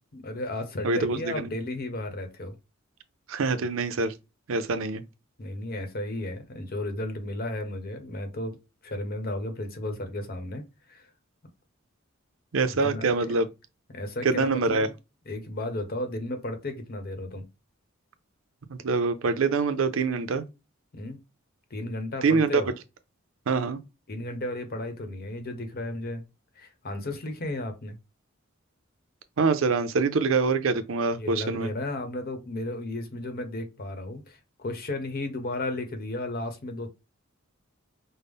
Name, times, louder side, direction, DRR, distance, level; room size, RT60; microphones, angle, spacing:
voice 1, 0.1-2.5 5.4-8.6 8.8-10.6 10.9-11.0 12.8-13.4 13.9-14.9 15.3-17.4 20.9-21.2 21.7-22.7 24.1-26.2 26.6-28.0 31.1-36.9, left 1 dB, 50° left, 0.9 m, -34 dB
voice 2, 0.8-1.5 3.3-4.1 4.5-5.0 12.5-13.5 14.2-14.9 18.7-20.4 22.2-22.6 23.5-23.8 29.4-31.7, right 4 dB, 80° right, 0.5 m, -25 dB
5.3 x 2.0 x 3.5 m
head